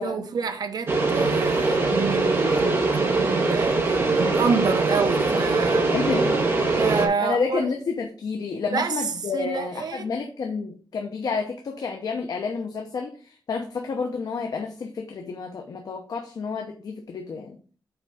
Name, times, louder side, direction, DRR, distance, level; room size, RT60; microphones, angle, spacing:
voice 1, 0.0-3.8 4.1-5.9 6.8-7.7 8.7-8.9 9.3-10.1, right 5 dB, 60° right, 0.8 m, -28 dB
sound 1, 0.9-7.1, right 3 dB, 30° right, 1.5 m, -22 dB
voice 2, 5.9-6.9 7.2-17.6, left 5 dB, 55° left, 0.8 m, -30 dB
5.9 x 4.5 x 5.2 m
wide cardioid pair, 160°, 8 cm